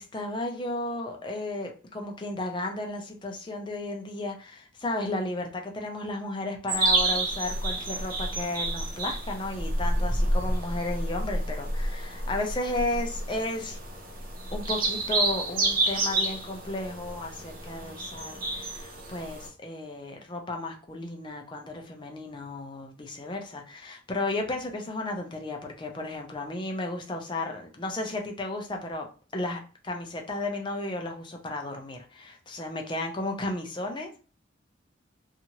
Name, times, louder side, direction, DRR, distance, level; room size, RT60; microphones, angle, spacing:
voice 1, 0.0-13.8 14.5-29.1 29.3-34.2, left 2 dB, 25° left, 2 dB, 0.5 m, -34 dB
sound 1, 6.7-19.5, right 2 dB, 45° right, 0.7 m, -29 dB
2.7 x 2.4 x 2.9 m, 0.36 s
head